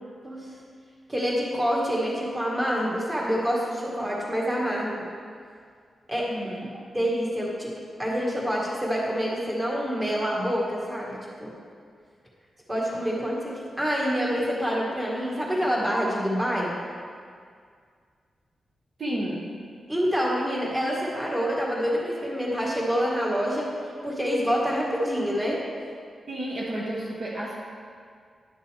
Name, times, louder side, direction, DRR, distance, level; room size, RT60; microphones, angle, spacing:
voice 1, 1.1-5.1 6.1-6.3 6.9-7.7 8.0-11.1 11.4-11.6 12.7-16.8 19.9-23.7 24.0-25.6, equal, 15° right, -4 dB, 1.8 m, -27 dB
voice 2, 6.3-6.7 19.0-19.5 26.3-27.5, right 1 dB, 50° right, -5 dB, 1.2 m, -31 dB
10.5 x 6.6 x 3.4 m, 2.1 s
wide cardioid pair, 100°, 0 cm